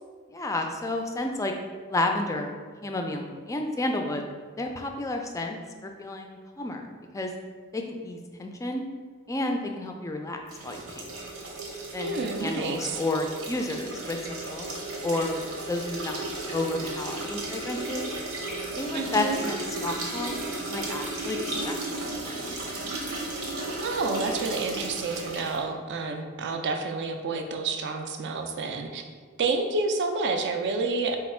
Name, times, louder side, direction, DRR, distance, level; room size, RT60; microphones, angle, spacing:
voice 1, 0.3-1.5 1.9-2.5 2.8-4.3 4.6-7.3 7.7-8.8 9.3-11.1 11.9-12.1 12.4-14.2 14.5-14.7 15.0-15.4 15.7-16.2 16.5-18.1 18.8-20.4 20.7-21.8 22.1-22.7, left 2 dB, 15° left, 3 dB, 0.3 m, -31 dB
sound 1, 10.5-25.6, right 2 dB, 80° right, 0.9 m, -34 dB
voice 2, 11.9-13.0 18.9-19.5 23.8-29.0 29.4-31.2, right 3 dB, 55° right, 5 dB, 0.4 m, -29 dB
4.3 x 2.3 x 4.2 m, 1.6 s
head